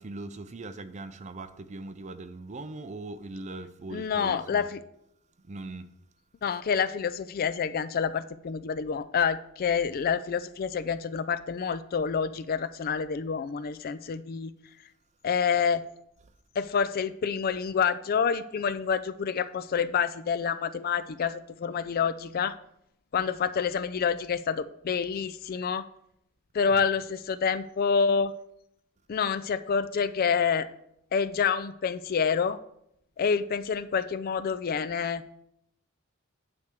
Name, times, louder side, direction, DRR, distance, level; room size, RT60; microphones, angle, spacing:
voice 1, 0.0-4.7 5.4-5.9, right 2 dB, 35° right, 0.5 m, -40 dB
voice 2, 3.9-4.8 6.4-14.5 15.2-15.8 16.6-22.6 23.1-25.9 26.5-28.3 29.1-30.7 31.1-32.6 33.2-35.2, left 6 dB, 45° left, 0.3 m, -28 dB
9.5 x 3.4 x 6.5 m
head